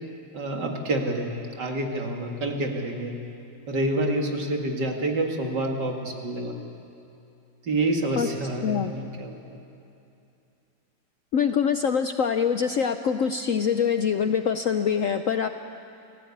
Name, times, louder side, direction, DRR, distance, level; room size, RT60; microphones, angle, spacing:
voice 1, 0.3-1.3 1.6-3.1 3.7-6.6 7.6-9.4, right 1 dB, 65° right, 2 dB, 2.7 m, -27 dB
voice 2, 8.6-8.9 11.3-15.5, left 7 dB, 65° left, 8 dB, 0.8 m, -24 dB
29.0 x 15.5 x 8.5 m, 2.7 s
omnidirectional pair, 2.0 m